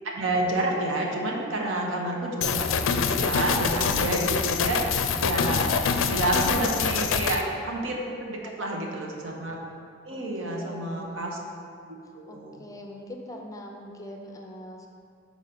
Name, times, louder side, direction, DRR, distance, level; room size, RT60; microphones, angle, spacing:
voice 1, 0.0-4.9 5.2-5.8 6.1-9.6 10.0-11.4 12.1-12.6, right 1 dB, 80° right, -1 dB, 1.0 m, -29 dB
sound 1, 2.4-7.4, left 6 dB, 75° left, 0.4 m, -25 dB
voice 2, 8.3-9.2 10.1-11.3 12.0-14.9, equal, 15° left, 2 dB, 0.5 m, -43 dB
5.1 x 4.8 x 5.8 m, 2.3 s
head